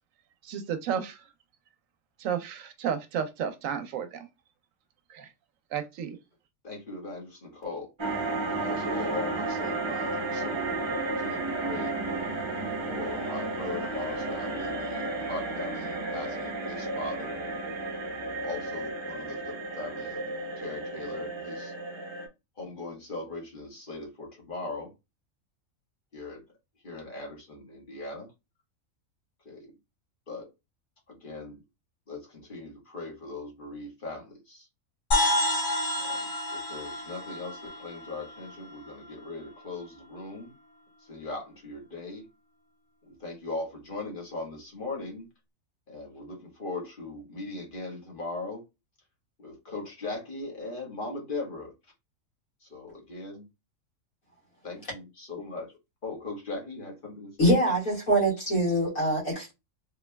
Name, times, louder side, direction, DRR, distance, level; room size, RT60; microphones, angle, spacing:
voice 1, 0.5-1.2 2.2-4.1 5.1-5.3 5.7-6.1, right 8 dB, 75° right, 1.0 m, -32 dB
voice 2, 6.6-7.9 8.5-11.9 12.8-17.5 18.4-20.3 20.6-21.7 22.6-24.9 26.1-26.4 26.8-28.3 29.4-29.8 30.3-30.5 31.1-31.6 32.1-34.7 36.0-40.5 41.0-42.3 43.1-45.3 45.9-48.6 49.4-51.7 52.6-53.4 54.6-57.6, left 2 dB, 40° left, 1.4 m, -39 dB
sound 1, 8.0-22.3, right 2 dB, 30° right, 0.6 m, -33 dB
sound 2, 35.1-38.9, left 1 dB, 60° left, 2.0 m, -29 dB
voice 3, 57.4-59.5, right 1 dB, 75° left, 2.2 m, -24 dB
3.5 x 3.0 x 2.2 m
omnidirectional pair, 1.4 m